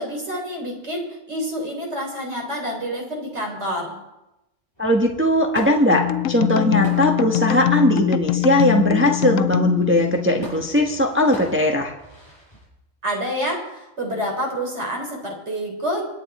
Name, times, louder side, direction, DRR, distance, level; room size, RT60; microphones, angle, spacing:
voice 1, 0.0-4.0 13.0-16.1, equal, 60° right, 0 dB, 4.2 m, -28 dB
sound 1, 4.8-12.7, right 1 dB, 20° left, 7.3 m, -41 dB
voice 2, 4.8-11.9, equal, 10° right, 2 dB, 1.2 m, -19 dB
sound 2, 5.9-10.7, left 14 dB, 80° left, 1.0 m, -23 dB
25.5 x 9.4 x 4.2 m, 0.94 s
omnidirectional pair, 1.3 m